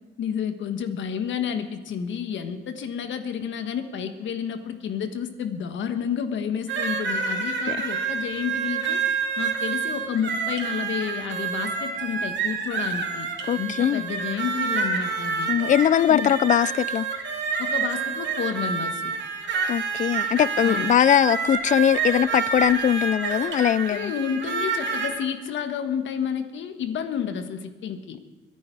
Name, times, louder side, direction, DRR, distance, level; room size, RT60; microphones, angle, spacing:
voice 1, 0.2-9.0 9.4-13.3 13.6-15.5 15.9-16.3 17.6-19.1 20.6-20.9 23.9-28.2, left 7 dB, 70° left, 1.4 m, -30 dB
sound 1, 6.7-25.1, right 5 dB, 65° right, 2.6 m, -28 dB
voice 2, 13.5-14.1 15.5-17.1 19.7-24.1, left 10 dB, 40° left, 0.4 m, -21 dB
22.5 x 10.5 x 4.7 m
cardioid pair, 90°, 20 cm